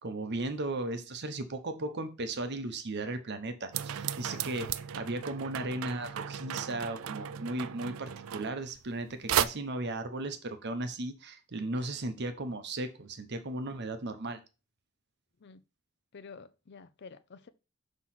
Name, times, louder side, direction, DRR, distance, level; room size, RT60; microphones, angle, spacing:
voice 1, 0.0-14.4, right 2 dB, 55° right, 0.8 m, -36 dB
sound 1, 3.7-9.0 9.3-9.5, right 10 dB, 70° right, 0.4 m, -35 dB
voice 2, 16.1-17.5, left 5 dB, 55° left, 0.5 m, -49 dB
6.1 x 3.1 x 5.8 m
head